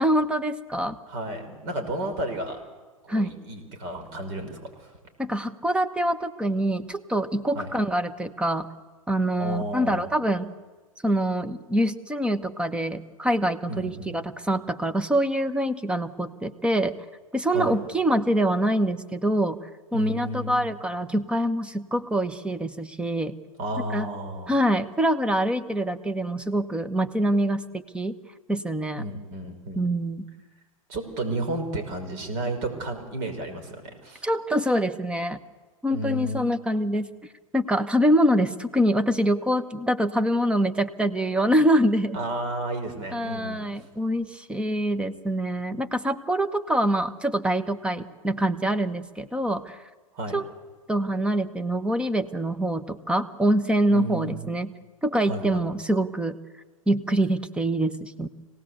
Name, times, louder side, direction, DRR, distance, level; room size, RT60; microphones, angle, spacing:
voice 1, 0.0-0.9 3.1-3.4 5.2-8.7 9.1-10.5 11.0-16.9 17.3-19.6 19.9-23.3 23.9-24.1 24.5-28.2 28.5-29.1 29.7-30.3 34.2-35.4 35.8-37.1 37.5-42.2 43.1-49.8 50.3-50.5 50.9-54.7 55.0-56.4 56.9-58.3, right 1 dB, 5° right, 10 dB, 1.3 m, -25 dB
voice 2, 1.1-2.6 3.0-4.9 7.5-7.7 9.4-10.1 13.7-14.2 17.5-17.7 19.9-20.7 23.6-24.6 29.0-29.8 30.9-34.3 35.9-36.4 42.1-43.8 50.1-50.3 53.9-54.5 55.3-55.7, right 1 dB, 45° right, 6 dB, 5.6 m, -32 dB
26.0 x 18.5 x 8.2 m, 1.3 s
figure-of-eight pair, 95°, 18 cm